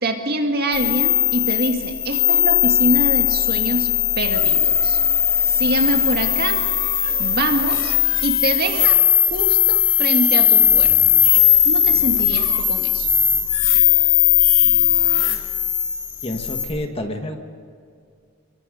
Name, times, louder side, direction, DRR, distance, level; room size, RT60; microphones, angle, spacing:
voice 1, 0.0-3.9 4.2-5.0 5.5-6.6 7.2-7.9 8.2-9.0 9.3-10.9 11.6-13.1, right 1 dB, 45° right, 4 dB, 2.1 m, -25 dB
sound 1, 0.7-16.7, left 11 dB, 60° left, 2.7 m, -18 dB
voice 2, 16.2-17.4, left 1 dB, 25° left, 4 dB, 1.6 m, -28 dB
27.5 x 23.0 x 5.2 m, 2.3 s
head